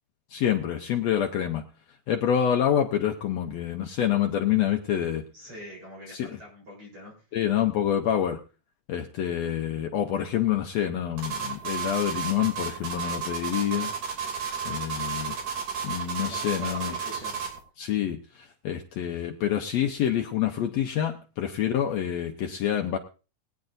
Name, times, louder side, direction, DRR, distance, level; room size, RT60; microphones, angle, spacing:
voice 1, 0.3-1.6 2.1-5.3 6.1-6.3 7.3-8.4 8.9-13.9 14.6-15.3 15.8-17.0 17.8-23.0, left 10 dB, 80° left, 4 dB, 1.5 m, -27 dB
voice 2, 5.3-7.1 14.7-15.2 16.3-17.4, equal, 35° right, -3 dB, 4.8 m, -44 dB
sound 1, 11.2-17.6, right 6 dB, 55° right, 4.0 m, -32 dB
21.5 x 9.6 x 2.6 m, 0.34 s
omnidirectional pair, 4.0 m